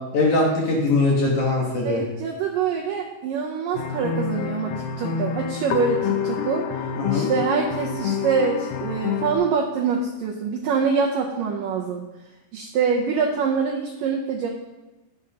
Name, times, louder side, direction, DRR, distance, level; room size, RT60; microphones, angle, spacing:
voice 1, 0.1-2.0 7.0-7.3, left 2 dB, 60° left, -3 dB, 2.3 m, -21 dB
voice 2, 1.8-6.7 7.1-12.0 12.5-14.5, right 5 dB, 80° right, 0 dB, 2.0 m, -25 dB
sound 1, 3.7-9.4, left 7 dB, 80° left, 2.2 m, -27 dB
14.5 x 7.4 x 2.9 m, 1.1 s
omnidirectional pair, 4.9 m